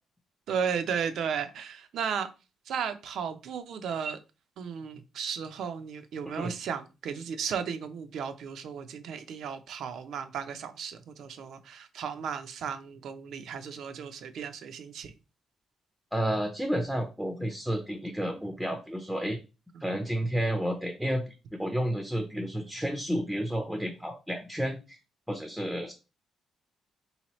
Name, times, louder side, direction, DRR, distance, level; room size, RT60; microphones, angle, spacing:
voice 1, 0.5-2.3 2.7-4.2 4.6-15.1 19.8-19.9, right 7 dB, 65° right, 0.5 m, -34 dB
voice 2, 16.1-19.4 19.8-25.0 25.3-25.9, equal, ahead, 0.4 m, -31 dB
3.8 x 2.8 x 3.0 m
cardioid pair, 150°, 0 cm